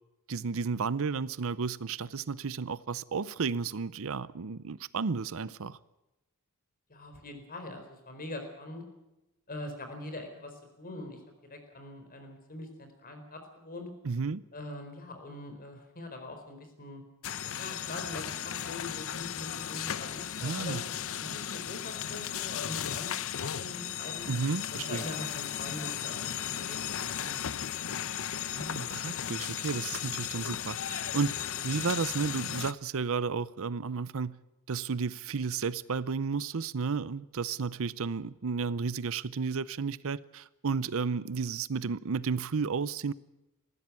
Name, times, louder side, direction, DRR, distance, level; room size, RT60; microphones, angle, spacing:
voice 1, 0.3-5.8 14.0-14.4 20.4-20.8 24.3-25.0 28.6-34.3 34.7-43.1, right 5 dB, 65° right, 0.6 m, -32 dB
voice 2, 6.9-8.8 9.5-11.2 11.5-13.9 14.5-17.0 17.6-24.3 24.7-26.3 26.6-27.5, left 1 dB, 40° left, 4.4 m, -43 dB
sound 1, 17.2-32.7, left 9 dB, 65° left, 0.8 m, -36 dB
20.0 x 15.0 x 9.7 m
head